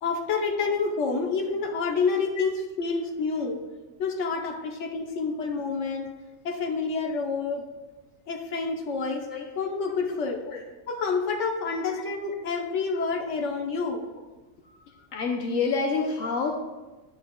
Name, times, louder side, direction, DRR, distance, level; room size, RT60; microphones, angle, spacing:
voice 1, 0.0-3.6 4.0-6.1 6.4-7.7 8.3-9.3 9.6-10.4 10.9-14.0, left 4 dB, 65° left, 2 dB, 1.3 m, -28 dB
voice 2, 15.1-16.5, left 4 dB, 80° left, 1 dB, 1.2 m, -27 dB
11.0 x 8.4 x 2.3 m, 1.2 s
omnidirectional pair, 1.4 m